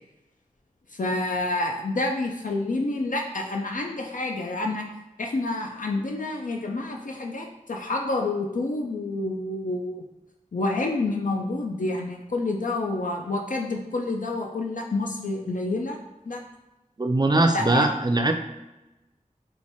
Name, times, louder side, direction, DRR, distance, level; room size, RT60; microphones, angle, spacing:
voice 1, 1.0-4.9 5.2-10.0 10.5-16.0 16.3-16.4 17.5-17.9, left 2 dB, 70° left, 1 dB, 0.4 m, -28 dB
voice 2, 17.0-18.3, right 2 dB, 30° right, 4 dB, 0.4 m, -21 dB
3.1 x 2.2 x 4.0 m, 1.0 s
wide cardioid pair, 45°, 14 cm